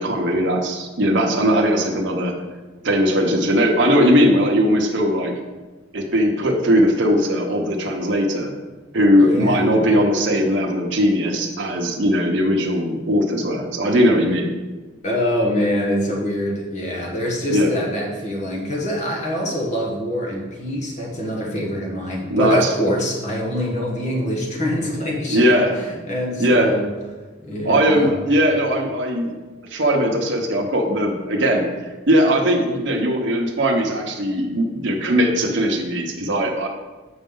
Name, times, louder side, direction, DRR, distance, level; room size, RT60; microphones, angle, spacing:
voice 1, 0.0-2.3 2.8-5.3 5.9-8.5 8.9-14.5 17.5-17.7 22.3-22.7 25.3-25.7 26.4-26.7 27.6-29.3 29.7-31.7 32.1-36.7, equal, 65° right, 1 dB, 0.9 m, -19 dB
voice 2, 9.2-9.6 15.0-26.9 27.4-28.1, equal, 35° left, -2 dB, 1.4 m, -25 dB
7.9 x 5.2 x 3.8 m, 1.3 s
head